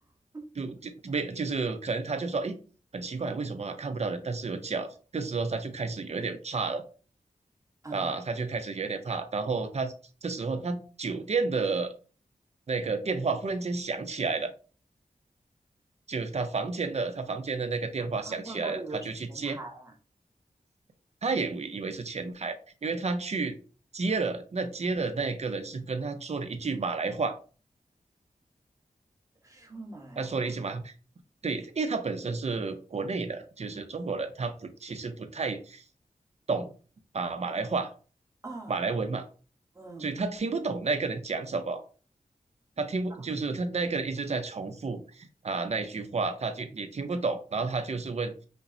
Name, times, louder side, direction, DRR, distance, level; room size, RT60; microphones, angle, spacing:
voice 1, 0.5-2.5 2.9-6.8 7.9-9.9 10.2-11.9 12.7-14.5 16.1-19.6 21.2-23.6 23.9-27.4 30.2-30.9 31.4-35.8 36.5-36.7 37.1-37.9 38.7-39.3 40.0-41.8 42.8-48.3, right 4 dB, 50° right, 8 dB, 0.5 m, -31 dB
voice 2, 7.8-8.1 18.2-19.9 29.4-30.4 38.4-38.7 39.7-40.1, right 2 dB, 20° right, 0 dB, 1.1 m, -42 dB
5.2 x 2.0 x 2.6 m, 0.38 s
wide cardioid pair, 80°, 15 cm